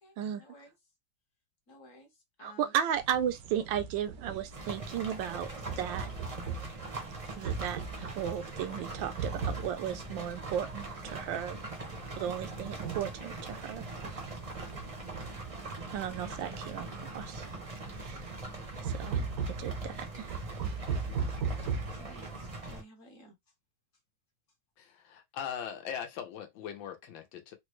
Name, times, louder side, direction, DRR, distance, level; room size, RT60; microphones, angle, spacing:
voice 1, 0.0-0.7 1.7-2.7 20.7-21.1 21.5-23.4, equal, 50° left, 1.2 m, -55 dB
voice 2, 2.4-5.5 5.8-6.1 7.4-11.6 12.2-13.8 15.9-17.6 17.9-18.4 18.8-20.4, right 9 dB, 80° right, 1.3 m, -35 dB
sound 1, 3.0-22.5, right 5 dB, 65° right, 0.9 m, -40 dB
sound 2, 4.5-22.8, right 2 dB, 35° right, 0.5 m, -42 dB
voice 3, 24.8-27.6, left 8 dB, 85° left, 1.5 m, -40 dB
3.9 x 2.2 x 3.1 m
omnidirectional pair, 2.1 m